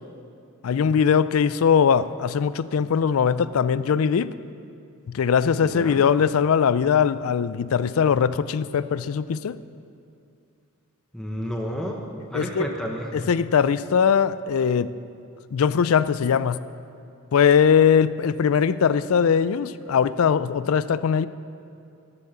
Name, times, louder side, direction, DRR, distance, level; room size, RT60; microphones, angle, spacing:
voice 1, 0.6-4.3 5.1-9.6 12.3-12.7 13.1-14.9 15.5-16.6 17.3-21.3, left 7 dB, 75° left, 16 dB, 0.4 m, -20 dB
voice 2, 5.6-6.0 11.1-12.0 12.3-13.3, equal, 5° left, 0 dB, 1.0 m, -31 dB
12.0 x 8.4 x 7.1 m, 2.6 s
head